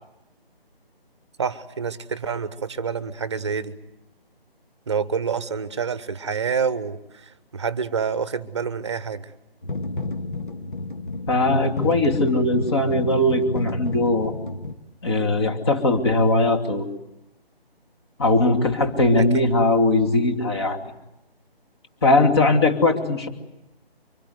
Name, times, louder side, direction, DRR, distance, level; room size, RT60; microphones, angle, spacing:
voice 1, 1.4-3.7 4.9-9.3 19.2-19.5, right 6 dB, 30° right, 16 dB, 1.2 m, -27 dB
sound 1, 9.6-14.7, left 2 dB, 55° left, 2.3 m, -30 dB
voice 2, 11.3-14.3 15.0-16.8 18.2-20.8 22.0-23.3, left 2 dB, 25° left, 5 dB, 2.7 m, -20 dB
25.0 x 23.0 x 9.4 m, 0.89 s
figure-of-eight pair, 155°, 31 cm